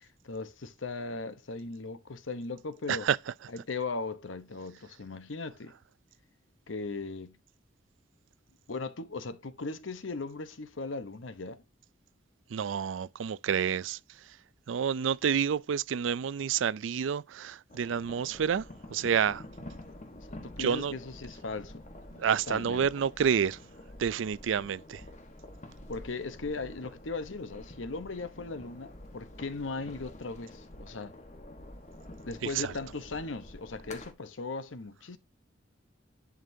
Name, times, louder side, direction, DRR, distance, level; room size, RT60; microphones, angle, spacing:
voice 1, 0.0-3.1 3.5-5.7 6.7-7.4 8.7-11.6 20.2-21.8 22.3-22.9 25.9-31.1 32.3-35.2, left 3 dB, 85° left, 0.9 m, -38 dB
voice 2, 12.5-14.0 14.7-19.4 20.6-20.9 22.2-23.6 24.0-25.0 32.4-32.7, right 7 dB, 85° right, 0.4 m, -29 dB
sound 1, 17.7-34.1, left 1 dB, 40° left, 1.3 m, -48 dB
11.0 x 5.1 x 2.7 m
head